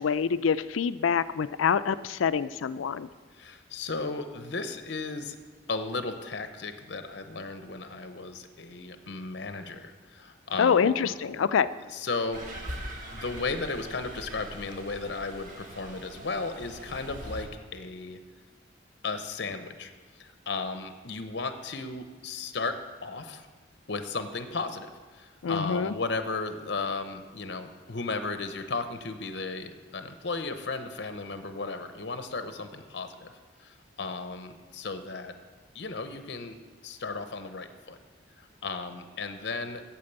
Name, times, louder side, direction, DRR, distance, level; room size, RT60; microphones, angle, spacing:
voice 1, 0.0-3.1 10.6-11.7 25.4-25.9, left 6 dB, 90° left, 15 dB, 0.4 m, -26 dB
voice 2, 3.3-5.3 5.7-11.1 11.9-12.4 13.1-18.2 19.0-19.9 20.2-23.5 23.9-33.3 33.6-35.3 35.7-36.6 36.8-38.0 38.4-39.9, left 3 dB, 60° left, 8 dB, 0.8 m, -35 dB
sound 1, 12.3-17.5, equal, 40° right, 1.7 m, -42 dB
8.7 x 7.5 x 8.0 m, 1.5 s
head